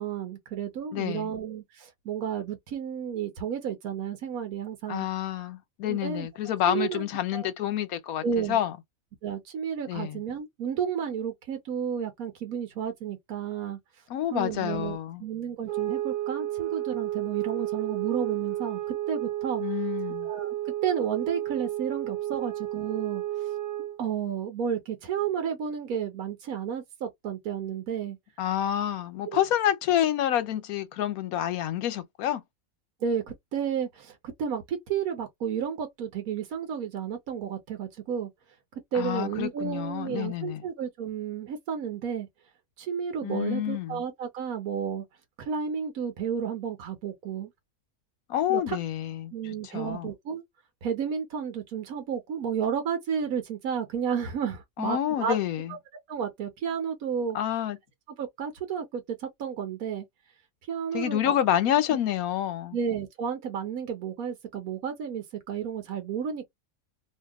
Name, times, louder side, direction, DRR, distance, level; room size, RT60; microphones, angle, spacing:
voice 1, 0.0-5.1 5.9-6.3 6.7-7.1 7.3-7.5 8.2-8.6 9.2-13.8 14.3-19.6 20.2-20.5 20.8-23.2 24.0-28.2 29.2-29.4 33.0-38.3 38.9-42.3 42.8-45.0 45.4-47.5 48.5-48.8 49.3-50.4 50.8-55.4 55.7-55.8 56.1-57.4 58.2-60.1 60.7-61.3 61.9-62.0 62.7-66.5, right 7 dB, 90° right, 1.3 m, -32 dB
voice 2, 0.9-1.3 4.9-8.7 9.9-10.2 14.1-15.2 19.6-20.3 28.4-32.4 38.9-40.6 43.2-44.0 48.3-49.3 49.7-50.1 54.8-55.7 57.3-57.8 60.9-62.8, left 11 dB, 85° left, 1.2 m, -28 dB
sound 1, 15.6-24.0, right 13 dB, 50° right, 0.5 m, -32 dB
2.8 x 2.6 x 3.5 m
omnidirectional pair, 1.5 m